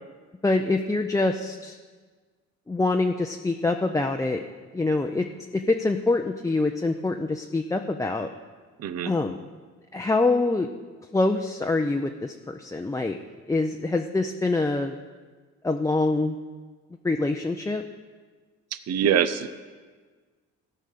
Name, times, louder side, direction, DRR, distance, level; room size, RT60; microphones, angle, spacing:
voice 1, 0.4-1.8 2.7-4.4 4.7-5.3 5.5-8.3 9.1-9.4 9.9-10.7 11.1-13.2 13.5-15.0 15.6-16.3 17.0-17.8, left 2 dB, 10° left, 4 dB, 0.5 m, -25 dB
voice 2, 8.8-9.1 18.7-19.5, right 9 dB, 60° right, 12 dB, 0.6 m, -24 dB
15.5 x 5.5 x 6.6 m, 1.4 s
cardioid pair, 90°, 30 cm